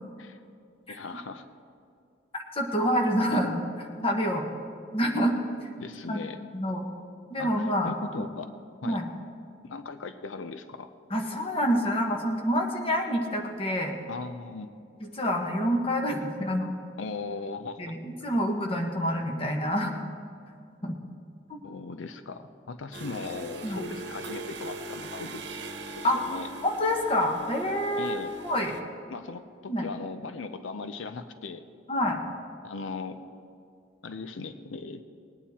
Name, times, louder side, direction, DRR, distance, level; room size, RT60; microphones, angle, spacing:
voice 1, 0.9-1.5 3.3-3.4 5.8-6.7 7.4-8.5 8.8-9.0 9.6-10.9 14.1-14.7 17.0-18.0 21.6-25.5 25.9-26.5 28.0-28.4 29.1-31.6 32.6-33.2 34.0-35.0, left 4 dB, 85° left, 10 dB, 0.6 m, -38 dB
voice 2, 2.3-3.6 4.0-4.4 4.9-5.3 6.1-6.2 6.5-6.8 7.3-7.9 8.8-9.0 11.1-13.9 15.0-16.7 17.8-19.9 20.8-21.0 21.5-21.6 23.6-23.8 26.0-26.2 26.6-28.2 28.4-28.8 29.7-29.8 31.9-32.2, equal, 30° left, 2 dB, 1.3 m, -27 dB
sound 1, 22.9-28.8, right 2 dB, 60° right, 1.1 m, -40 dB
20.0 x 9.2 x 4.3 m, 2.4 s
head